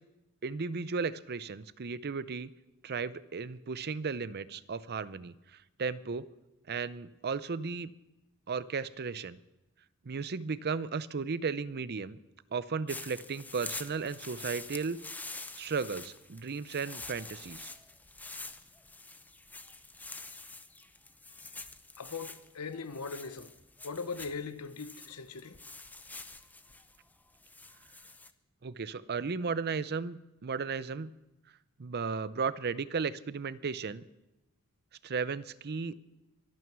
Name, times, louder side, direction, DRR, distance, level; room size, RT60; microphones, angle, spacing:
voice 1, 0.4-2.5 2.8-5.3 5.8-6.3 6.7-7.9 8.5-9.4 10.1-12.2 12.5-15.0 15.6-17.7 28.6-31.1 31.8-34.0 35.0-35.9, right 5 dB, 45° right, 0.6 m, -35 dB
sound 1, 12.9-28.3, left 3 dB, 5° left, 0.6 m, -46 dB
voice 2, 22.0-23.5 23.8-25.5, left 4 dB, 90° left, 1.0 m, -40 dB
23.5 x 9.4 x 6.0 m
head